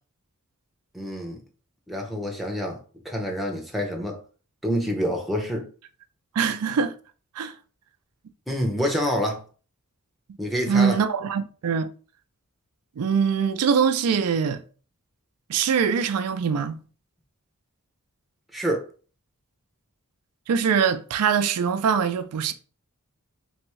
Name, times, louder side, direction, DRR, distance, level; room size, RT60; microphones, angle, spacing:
voice 1, 0.9-1.4 1.9-2.8 3.0-4.2 4.6-5.7 8.5-9.4 10.4-11.0 18.5-18.9, equal, ahead, 0.8 m, -27 dB
voice 2, 6.3-6.9 7.4-7.5 10.7-11.9 13.0-14.6 15.5-16.8 20.5-22.5, right 6 dB, 85° right, 0.4 m, -23 dB
3.5 x 3.4 x 3.1 m
head